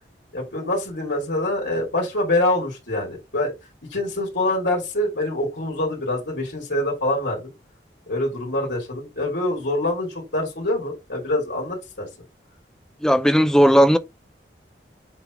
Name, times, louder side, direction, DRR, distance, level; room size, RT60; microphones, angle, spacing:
voice 1, 0.3-3.5 3.9-7.4 8.1-12.1, left 1 dB, 85° left, 2.8 m, -25 dB
voice 2, 13.0-14.0, equal, 5° left, 0.5 m, -15 dB
7.8 x 3.4 x 3.7 m
head